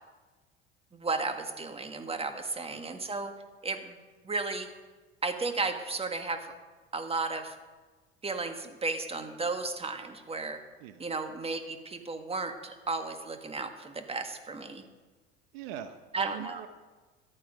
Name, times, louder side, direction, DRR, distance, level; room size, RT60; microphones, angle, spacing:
voice 1, 0.9-3.3 3.6-4.0 4.2-4.7 5.2-6.5 6.9-7.6 8.2-10.6 11.0-14.8 16.1-16.6, right 3 dB, 20° right, 6 dB, 1.7 m, -34 dB
voice 2, 2.7-3.0 10.8-11.1 15.5-16.7, right 10 dB, 70° right, 9 dB, 1.0 m, -43 dB
13.5 x 11.5 x 5.3 m, 1.3 s
hypercardioid pair, 70°, 31 cm